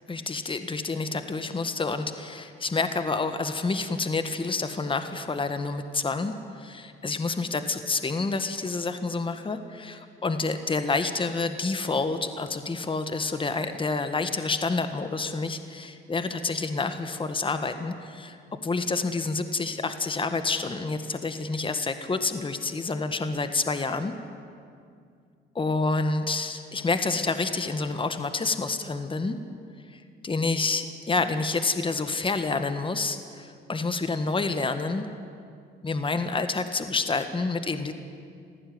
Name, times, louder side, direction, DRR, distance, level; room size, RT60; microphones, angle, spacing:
voice 1, 0.1-24.1 25.5-29.4 29.9-35.1 35.8-37.9, left 3 dB, 25° left, 9 dB, 1.6 m, -28 dB
24.0 x 16.0 x 9.7 m, 2.3 s
cardioid pair, 90°, 20 cm